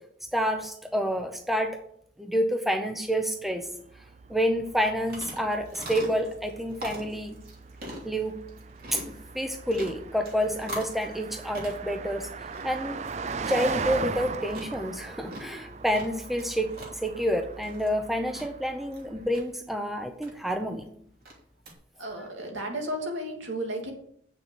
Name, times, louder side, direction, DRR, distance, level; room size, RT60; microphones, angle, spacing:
voice 1, 0.3-1.8 2.2-3.7 4.3-7.4 8.0-8.4 8.9-12.3 12.6-13.0 13.5-20.9, equal, ahead, 5 dB, 0.9 m, -28 dB
Car passing by, 3.5-19.2, right 4 dB, 35° right, 0.4 m, -39 dB
sound 1, 4.6-21.7, equal, 50° right, 3.1 m, -44 dB
voice 2, 22.0-23.9, right 1 dB, 90° right, 1 dB, 2.8 m, -33 dB
8.5 x 6.8 x 6.4 m, 0.67 s
head